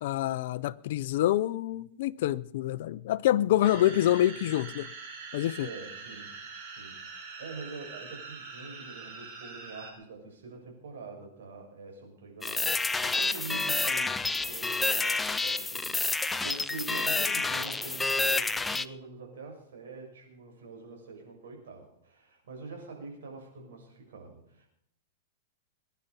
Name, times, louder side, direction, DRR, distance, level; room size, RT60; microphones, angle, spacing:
voice 1, 0.0-4.9 5.3-5.7, left 13 dB, 60° left, 0.6 m, -26 dB
sound 1, 3.6-9.9, right 4 dB, 45° right, 4.2 m, -44 dB
voice 2, 5.6-6.3 6.6-24.7, right 4 dB, 80° right, 6.6 m, -45 dB
sound 2, 12.4-18.8, left 3 dB, 10° left, 0.5 m, -29 dB
22.0 x 10.5 x 5.5 m
supercardioid pair, 150°, 0 cm